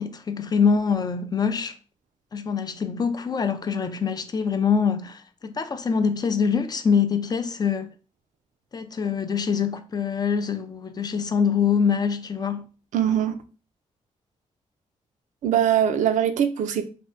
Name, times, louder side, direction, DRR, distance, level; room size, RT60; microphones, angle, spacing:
voice 1, 0.0-1.7 2.3-7.9 8.7-12.7, left 6 dB, 30° left, 0.4 m, -24 dB
voice 2, 12.9-13.3 15.4-16.9, right 9 dB, 80° right, 0.4 m, -22 dB
3.3 x 2.1 x 2.5 m
cardioid pair, 90°, 13 cm